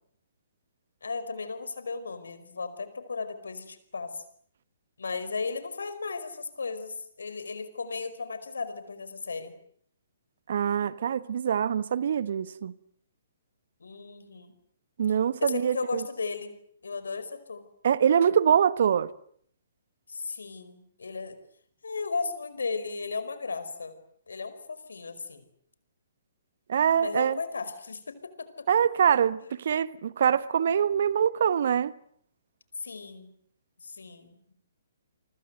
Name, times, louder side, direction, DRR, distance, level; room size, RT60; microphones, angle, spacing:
voice 1, 1.0-4.2 5.0-9.5 13.8-14.5 15.4-16.5 16.8-17.7 20.1-21.4 21.8-23.9 24.3-25.4 27.0-28.5 32.8-33.3 33.8-34.5, left 4 dB, 75° left, 4.9 m, -35 dB
voice 2, 10.5-12.7 15.0-16.0 17.8-19.1 26.7-27.4 28.7-31.9, right 8 dB, 55° right, 1.2 m, -24 dB
29.5 x 24.5 x 8.0 m
figure-of-eight pair, 125°, 0 cm